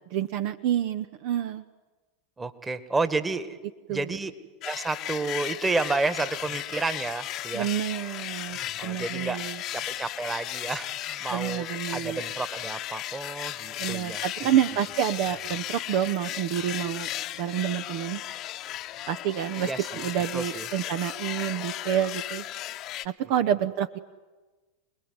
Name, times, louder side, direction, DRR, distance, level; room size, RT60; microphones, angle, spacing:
voice 1, 0.1-1.6 3.9-4.2 7.5-9.6 11.3-12.2 13.8-17.1 17.4-18.2 19.1-22.4 23.0-24.0, right 10 dB, 55° right, 12 dB, 0.9 m, -28 dB
voice 2, 2.4-3.6 3.9-4.3 4.6-7.7 8.8-9.4 9.7-14.2 19.6-20.1 20.3-20.7, right 3 dB, 15° right, 12 dB, 1.8 m, -31 dB
sound 1, 4.6-23.1, left 13 dB, 45° left, 1.0 m, -36 dB
26.5 x 20.5 x 9.6 m, 1.3 s
hypercardioid pair, 85°, 0 cm